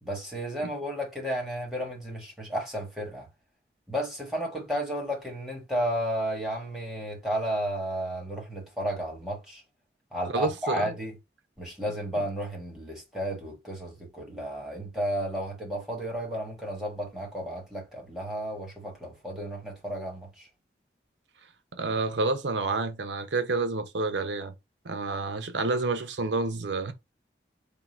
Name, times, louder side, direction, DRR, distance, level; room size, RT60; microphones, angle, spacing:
voice 1, 0.0-3.3 3.9-9.6 10.1-11.1 11.6-20.5, equal, ahead, 1.3 m, -33 dB
voice 2, 10.3-10.9 21.7-24.5 24.8-26.9, right 3 dB, 90° right, 0.7 m, -29 dB
3.7 x 2.3 x 4.3 m
head